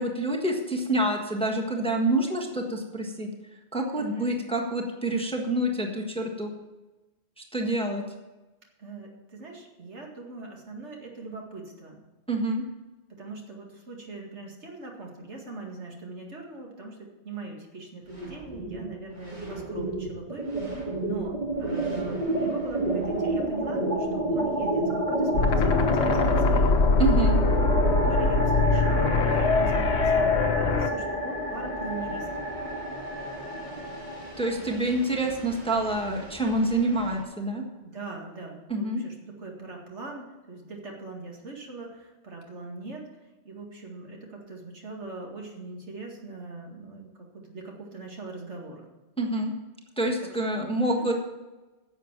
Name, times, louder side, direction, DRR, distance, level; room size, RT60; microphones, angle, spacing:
voice 1, 0.0-3.3 3.7-6.5 7.4-8.0 12.3-12.6 27.0-27.4 34.4-37.6 38.7-39.0 49.2-49.5 50.0-51.1, right 1 dB, 5° left, 2 dB, 1.4 m, -27 dB
voice 2, 3.9-4.4 7.7-7.8 8.8-12.0 13.1-26.8 28.0-32.3 37.8-43.1 43.4-48.8 50.8-51.0, right 3 dB, 75° right, 0 dB, 2.4 m, -41 dB
sound 1, 18.1-18.9 19.2-37.2, right 1 dB, 40° right, 2.7 m, -30 dB
sound 2, 25.3-30.9, left 4 dB, 70° left, 1.1 m, -23 dB
11.0 x 7.3 x 7.3 m, 1.1 s
omnidirectional pair, 1.2 m